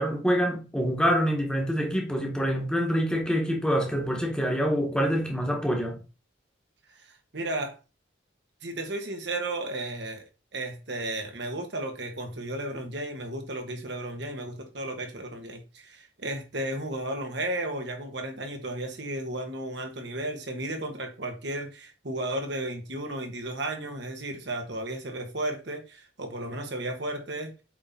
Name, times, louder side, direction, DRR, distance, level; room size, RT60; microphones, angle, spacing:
voice 1, 0.0-6.0, equal, 5° left, 1.5 m, -26 dB
voice 2, 6.9-7.8 8.6-10.2 10.5-27.5, right 1 dB, 60° right, 1.5 m, -34 dB
7.9 x 3.8 x 4.2 m
head